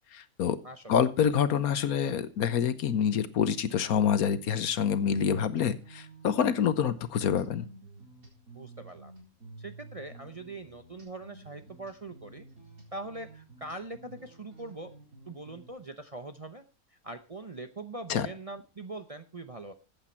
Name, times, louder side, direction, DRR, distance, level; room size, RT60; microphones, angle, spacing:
voice 1, 0.1-0.6 0.9-7.7 18.1-18.3, left 8 dB, 80° left, 13 dB, 1.3 m, -27 dB
sound 1, 4.0-15.7, right 3 dB, 70° right, 4.6 m, -52 dB
voice 2, 8.5-9.1 9.6-12.4 12.9-14.9 15.3-16.6 16.9-19.7, right 2 dB, 30° right, 7 dB, 0.7 m, -42 dB
14.5 x 8.7 x 4.3 m, 0.32 s
omnidirectional pair, 1.5 m